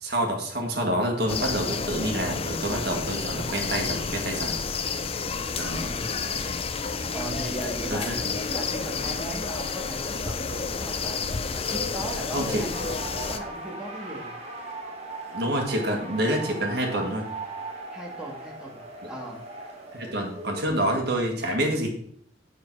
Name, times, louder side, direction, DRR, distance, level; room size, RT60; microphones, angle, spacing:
voice 1, 0.0-4.5 5.5-5.9 7.9-8.3 12.3-12.6 15.3-17.3 19.0-19.1 19.9-21.9, right 1 dB, 60° right, 1 dB, 1.7 m, -27 dB
sound 1, 1.3-13.4, left 5 dB, 30° left, 0.5 m, -30 dB
voice 2, 5.8-6.6 7.1-8.1 8.5-14.3 17.9-18.8 19.1-19.4, right 1 dB, 5° right, -2 dB, 1.7 m, -37 dB
sound 2, 12.7-20.7, right 2 dB, 35° right, 1.4 m, -38 dB
6.6 x 6.2 x 4.6 m, 0.64 s
head